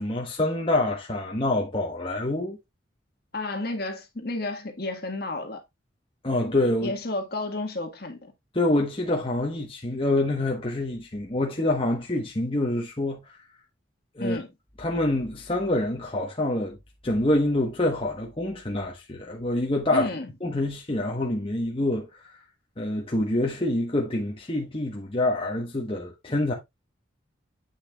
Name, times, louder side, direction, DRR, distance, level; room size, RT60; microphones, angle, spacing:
voice 1, 0.0-2.6 6.2-6.9 8.5-13.4 14.1-14.4 14.8-16.8 17.0-20.1 20.4-22.4 22.8-26.5, left 1 dB, 30° left, 1.0 m, -26 dB
voice 2, 3.3-5.6 6.8-8.3 14.2-14.5 19.9-20.3, left 2 dB, 50° left, 1.5 m, -31 dB
8.2 x 6.4 x 2.3 m
head